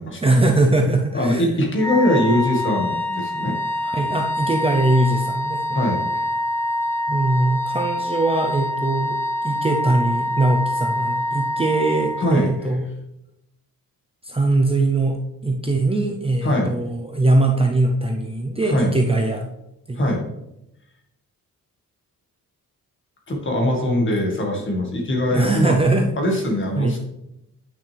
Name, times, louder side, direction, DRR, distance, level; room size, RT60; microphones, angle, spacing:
voice 1, 0.2-1.5 3.8-5.6 7.1-9.2 9.4-12.8 14.2-19.5 19.9-20.2 25.3-26.1 26.8-27.0, right 2 dB, 15° right, 2 dB, 0.6 m, -21 dB
voice 2, 1.1-3.5 5.7-6.2 12.2-12.5 16.4-16.7 18.6-18.9 20.0-20.2 23.3-25.8 26.2-27.0, left 1 dB, 35° left, 0 dB, 1.9 m, -21 dB
Wind instrument woodwind instrument, 1.8-12.5, left 1 dB, 5° left, 1.0 m, -25 dB
9.1 x 6.1 x 3.4 m, 0.85 s
wide cardioid pair, 155°, 34 cm